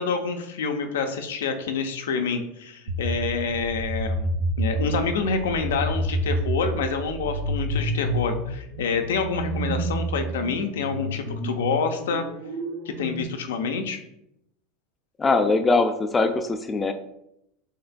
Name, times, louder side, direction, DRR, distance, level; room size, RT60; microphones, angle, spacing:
voice 1, 0.0-12.2 12.9-14.0, left 5 dB, 75° left, 6 dB, 0.6 m, -27 dB
sound 1, 2.9-13.2, right 1 dB, 65° right, 0.9 m, -29 dB
voice 2, 15.2-16.9, left 3 dB, 20° left, 7 dB, 0.4 m, -21 dB
6.6 x 3.3 x 2.2 m, 0.80 s
hypercardioid pair, 85°, 0 cm